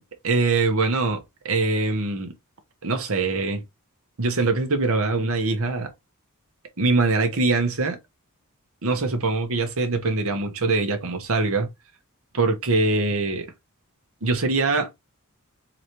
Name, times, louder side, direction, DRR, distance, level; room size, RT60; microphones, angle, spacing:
voice 1, 0.2-2.3 2.8-3.6 4.2-5.9 6.8-8.0 8.8-11.7 12.3-13.5 14.2-14.9, right 3 dB, 65° right, 1.1 m, -23 dB
3.9 x 3.2 x 2.9 m
head